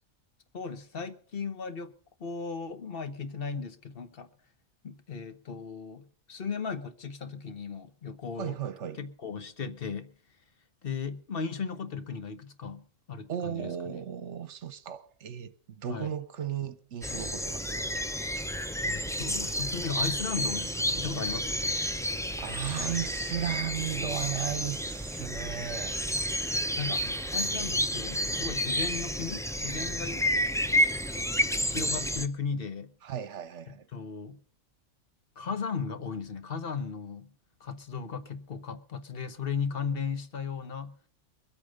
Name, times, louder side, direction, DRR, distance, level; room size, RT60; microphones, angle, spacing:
voice 1, 0.5-1.9 2.2-4.3 4.8-8.6 9.0-10.1 10.8-13.7 15.9-16.1 18.8-21.7 26.8-27.1 27.3-30.3 31.6-32.9 33.7-34.4 35.4-37.3 37.6-40.9, left 5 dB, 45° left, 1.3 m, -36 dB
voice 2, 8.4-9.0 13.3-17.9 22.4-25.9 26.9-27.1 33.0-33.9, right 10 dB, 65° right, 1.1 m, -35 dB
sound 1, 17.0-32.3, equal, 5° left, 0.3 m, -30 dB
23.0 x 8.5 x 5.3 m
omnidirectional pair, 1.4 m